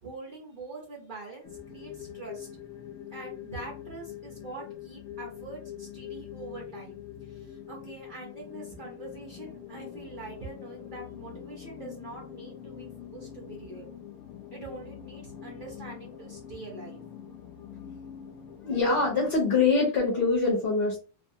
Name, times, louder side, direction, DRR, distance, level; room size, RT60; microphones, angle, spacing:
voice 1, 0.0-2.5 3.1-7.0 7.3-13.9 14.5-17.0, right 3 dB, 60° right, -1 dB, 0.5 m, -44 dB
sound 1, 1.4-19.3, left 10 dB, 75° left, 1.0 m, -44 dB
voice 2, 18.6-21.0, left 4 dB, 50° left, -2 dB, 0.8 m, -24 dB
2.5 x 2.4 x 2.6 m, 0.36 s
omnidirectional pair, 1.7 m